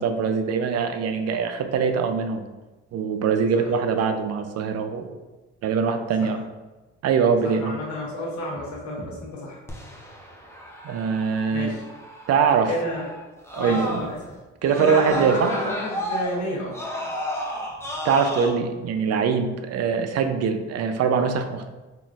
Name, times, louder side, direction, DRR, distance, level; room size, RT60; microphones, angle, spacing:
voice 1, 0.0-2.4 2.9-5.2 5.6-6.4 7.0-7.7 10.8-11.7 12.3-12.7 13.5-14.1 14.6-15.5 18.0-21.7, right 6 dB, 55° right, 7 dB, 0.4 m, -23 dB
voice 2, 7.4-9.6 11.5-11.8 12.7-13.2 13.5-14.4 14.6-16.8, left 1 dB, 75° left, -3 dB, 1.0 m, -31 dB
Screaming, 9.7-14.3 14.6-18.5, equal, 10° left, 0.6 m, -33 dB
3.7 x 2.4 x 2.3 m, 1.2 s
cardioid pair, 90°, 30 cm